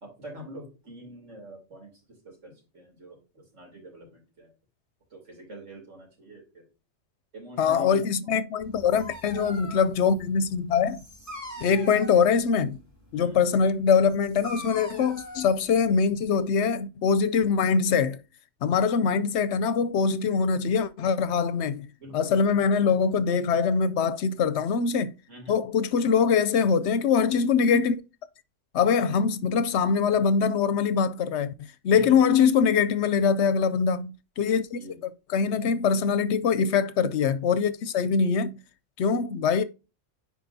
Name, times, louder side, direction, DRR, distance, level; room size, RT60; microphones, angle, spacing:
voice 1, 0.0-4.5 5.1-6.7 7.3-8.3 11.5-11.8 13.1-13.4 22.0-22.4 25.3-25.6 31.9-32.2 34.7-35.0, right 1 dB, 75° right, 3.2 m, -45 dB
voice 2, 7.6-11.0 11.6-12.8 13.1-18.2 18.6-21.9 22.1-25.1 25.5-28.0 28.7-34.8 35.3-38.6 39.0-39.6, left 6 dB, 70° left, 0.8 m, -23 dB
Dog, 8.6-16.4, left 1 dB, 15° right, 2.2 m, -43 dB
10.0 x 4.4 x 2.7 m
omnidirectional pair, 1.3 m